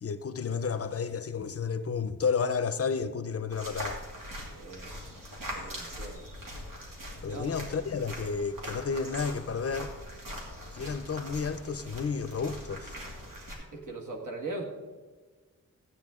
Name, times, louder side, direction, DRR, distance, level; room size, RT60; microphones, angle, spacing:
voice 1, 0.0-4.0 7.2-9.9 10.7-12.9, left 5 dB, 45° left, 0.5 m, -31 dB
sound 1, 3.5-13.5, equal, 90° right, 2.5 m, -42 dB
voice 2, 4.6-4.9 5.5-6.3 7.3-7.5 13.7-14.6, right 2 dB, 70° right, 1.7 m, -39 dB
15.0 x 8.7 x 3.6 m
wide cardioid pair, 165°, 32 cm